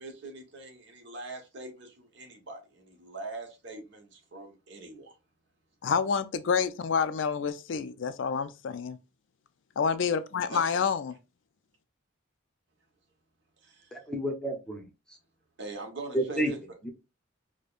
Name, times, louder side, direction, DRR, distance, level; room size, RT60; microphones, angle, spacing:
voice 1, 0.0-5.1 10.5-10.8 13.6-13.9 15.6-16.6, right 2 dB, 60° right, 1.1 m, -42 dB
voice 2, 5.8-9.0 9.8-11.1, left 6 dB, 65° left, 0.4 m, -28 dB
voice 3, 13.9-14.9 16.1-16.5 16.8-16.9, right 1 dB, 5° left, 0.7 m, -30 dB
4.9 x 2.2 x 2.4 m
head